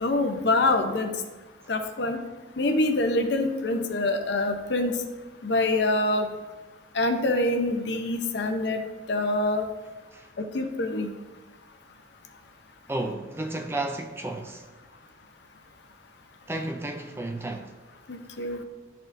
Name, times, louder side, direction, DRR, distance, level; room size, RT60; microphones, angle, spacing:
voice 1, 0.0-1.2 1.7-2.2 2.6-5.0 5.4-6.3 6.9-8.8 9.1-9.6 10.4-11.1 18.4-18.6, left 2 dB, 60° left, 0.6 m, -25 dB
voice 2, 12.9-14.7 16.5-17.7, right 2 dB, 10° right, 0.3 m, -32 dB
12.0 x 4.2 x 2.6 m
head